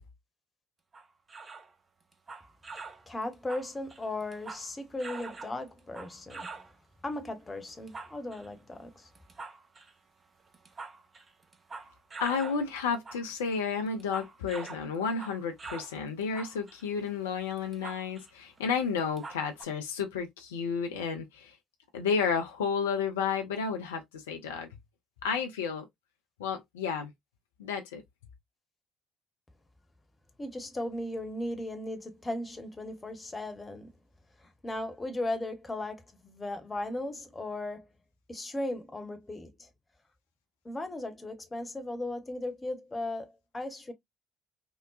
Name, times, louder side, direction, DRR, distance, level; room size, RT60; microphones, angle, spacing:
sound 1, 0.9-1.7 2.1-3.0 3.3-4.7 5.0-6.7 7.7-8.5 9.1-9.9 10.5-12.6 12.9-13.3 13.5-16.0 16.2-18.3 18.6-18.7 19.0-19.6, right 4 dB, 30° right, 0.7 m, -44 dB
voice 1, 3.1-6.6 7.0-9.1 30.4-33.9 34.4-37.9 38.3-39.7 40.6-43.9, left 1 dB, 20° left, 0.9 m, -37 dB
voice 2, 12.2-21.5 21.9-24.7 25.2-25.8 26.4-27.1 27.6-28.0, left 6 dB, 75° left, 0.4 m, -32 dB
3.7 x 2.1 x 2.3 m
figure-of-eight pair, 50°, 0 cm